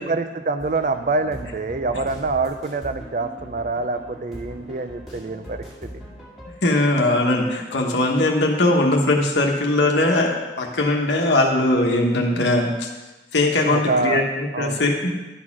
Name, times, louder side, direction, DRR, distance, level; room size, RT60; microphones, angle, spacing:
voice 1, 0.0-5.9 13.7-14.2 14.5-14.8, right 3 dB, 45° right, 9 dB, 0.5 m, -25 dB
sound 1, 0.6-6.5, equal, ahead, 1.9 m, -40 dB
voice 2, 6.6-12.9 13.3-15.1, left 2 dB, 75° left, 0 dB, 1.1 m, -20 dB
11.0 x 4.3 x 6.0 m, 1.1 s
head